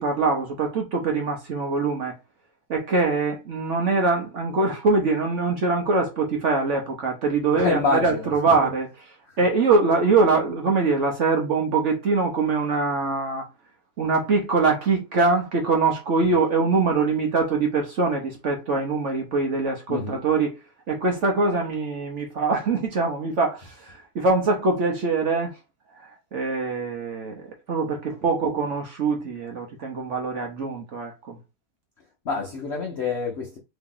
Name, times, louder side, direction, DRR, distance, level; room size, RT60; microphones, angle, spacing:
voice 1, 0.0-2.1 2.7-8.9 9.4-13.5 14.0-20.5 20.9-25.5 26.0-31.4, right 3 dB, 55° right, 0.9 m, -23 dB
voice 2, 7.5-8.3 8.6-8.7 9.3-9.4 19.9-20.2 32.2-33.6, left 4 dB, 60° left, 0.7 m, -27 dB
3.0 x 2.8 x 3.7 m
omnidirectional pair, 1.9 m